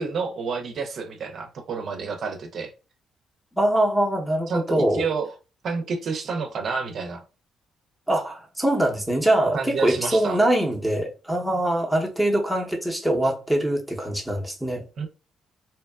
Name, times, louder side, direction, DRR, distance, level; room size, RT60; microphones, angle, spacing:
voice 1, 0.0-2.7 4.5-5.3 5.6-7.2 9.5-10.4 15.0-15.1, right 5 dB, 60° right, 0.4 m, -29 dB
voice 2, 3.6-5.0 8.1-14.8, right 1 dB, ahead, 0.7 m, -23 dB
2.7 x 2.2 x 2.2 m
cardioid pair, 90°, 0 cm